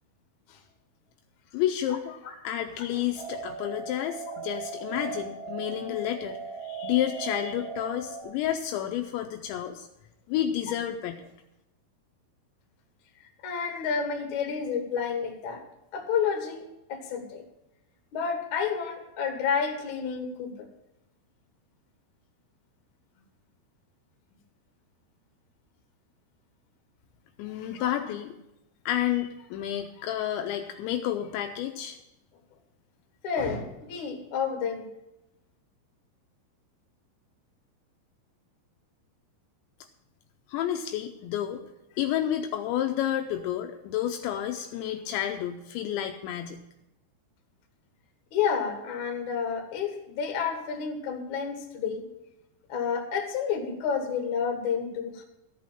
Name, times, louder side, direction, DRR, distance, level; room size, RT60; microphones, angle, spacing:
voice 1, 1.5-9.9 10.3-11.3 27.4-28.4 28.9-32.0 40.5-41.6 42.0-46.6, left 11 dB, 80° left, 5 dB, 2.8 m, -30 dB
sound 1, 3.1-8.2, right 5 dB, 10° right, 1.9 m, -38 dB
voice 2, 13.4-15.6 15.9-17.4 18.1-20.5 27.7-27.9 33.2-34.9 48.3-52.1 52.7-55.2, left 6 dB, 55° left, 4 dB, 2.3 m, -30 dB
13.5 x 6.4 x 7.2 m, 0.91 s
omnidirectional pair, 5.4 m